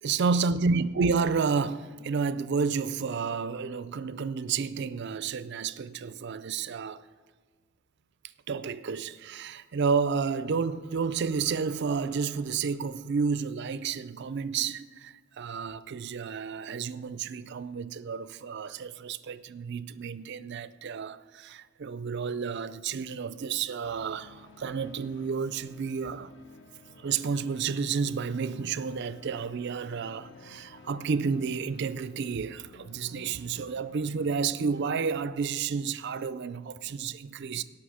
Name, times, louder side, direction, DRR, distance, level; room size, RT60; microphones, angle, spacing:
voice 1, 0.0-7.0 8.5-26.3 27.0-37.6, right 5 dB, 50° right, 0.4 m, -31 dB
sound 1, 23.8-35.3, left 3 dB, 50° left, 1.0 m, -53 dB
17.5 x 5.9 x 4.9 m
head